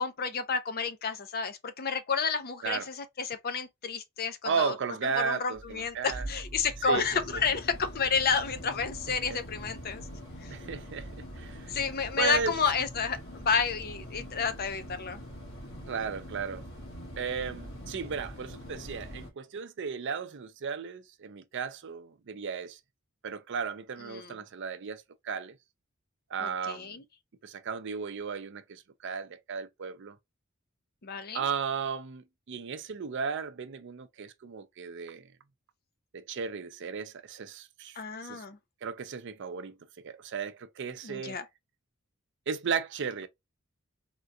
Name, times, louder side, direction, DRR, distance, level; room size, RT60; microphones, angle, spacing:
voice 1, 0.0-4.7 5.2-10.0 10.4-10.5 11.7-15.2 24.1-24.4 26.4-27.0 31.0-31.4 38.0-38.6 41.0-41.4, left 5 dB, 45° left, 0.6 m, -30 dB
voice 2, 4.4-6.3 6.8-7.2 9.3-9.4 10.5-11.8 12.2-12.5 15.9-16.6 17.2-22.8 23.2-25.6 26.3-27.0 27.4-30.2 31.3-35.3 36.1-38.4 38.8-41.4 42.5-43.3, right 6 dB, 60° right, 0.5 m, -35 dB
sound 1, 5.5-19.3, equal, 65° left, 1.8 m, -43 dB
3.7 x 2.3 x 2.6 m
head